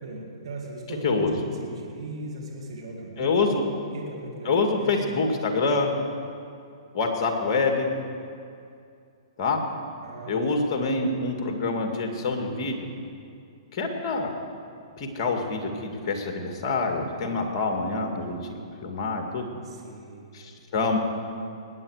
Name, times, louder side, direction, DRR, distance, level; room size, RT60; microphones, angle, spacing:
voice 1, 0.0-4.5 4.8-5.3 10.0-10.4 19.6-20.4, right 2 dB, 65° right, -1 dB, 2.4 m, -38 dB
voice 2, 1.0-1.3 3.2-3.6 4.5-5.9 6.9-7.9 9.4-9.6 10.3-12.9 13.7-14.3 15.0-19.5 20.3-21.0, left 3 dB, 40° left, 3 dB, 2.1 m, -26 dB
20.0 x 9.2 x 4.9 m, 2.4 s
hypercardioid pair, 125°, 3 cm